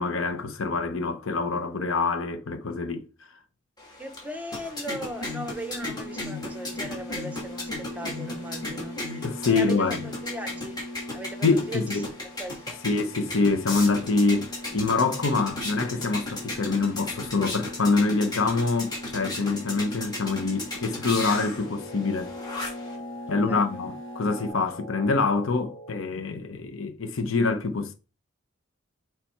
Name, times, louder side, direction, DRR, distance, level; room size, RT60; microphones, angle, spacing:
voice 1, 0.0-3.4 9.2-10.0 11.4-12.1 12.8-22.3 22.6-22.8 23.3-27.9, left 3 dB, 90° left, 0.8 m, -25 dB
sound 1, 3.8-23.0, left 2 dB, 20° left, 2.2 m, -36 dB
voice 2, 4.0-10.8 11.1-12.8 23.3-23.8, right 1 dB, 10° right, 0.8 m, -39 dB
sound 2, 5.1-24.5, left 1 dB, 70° left, 1.1 m, -41 dB
sound 3, 21.2-26.2, left 1 dB, 45° left, 2.5 m, -43 dB
7.1 x 3.4 x 4.5 m
head